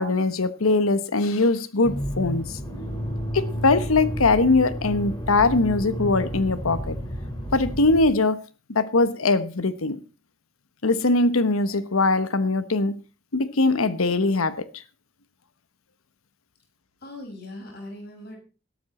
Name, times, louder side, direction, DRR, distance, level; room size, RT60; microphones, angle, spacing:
voice 1, 0.0-2.6 3.3-7.0 7.5-8.4 8.7-10.0 10.8-12.9 13.3-14.8, left 3 dB, 90° left, 1.1 m, -21 dB
Accelerating revving vroom, 1.8-8.1, equal, 25° left, 3.7 m, -31 dB
voice 2, 17.0-18.4, left 1 dB, 50° left, 6.1 m, -39 dB
13.0 x 12.5 x 4.2 m
head